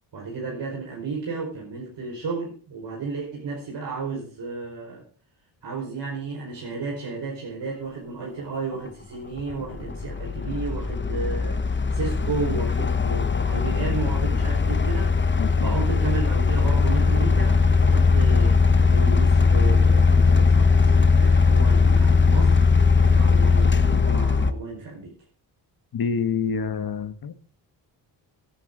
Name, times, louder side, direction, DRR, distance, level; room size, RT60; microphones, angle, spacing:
voice 1, 0.1-5.0 5.6-15.2 15.6-20.9 21.2-22.6 23.0-25.1, right 4 dB, 65° right, -2 dB, 5.2 m, -33 dB
sound 1, 8.7-8.8 9.4-24.5, left 4 dB, 25° left, 1.1 m, -19 dB
voice 2, 15.4-15.7 25.9-27.3, left 6 dB, 50° left, 11 dB, 1.5 m, -27 dB
18.0 x 10.5 x 3.9 m, 0.42 s
cardioid pair, 80°, 45 cm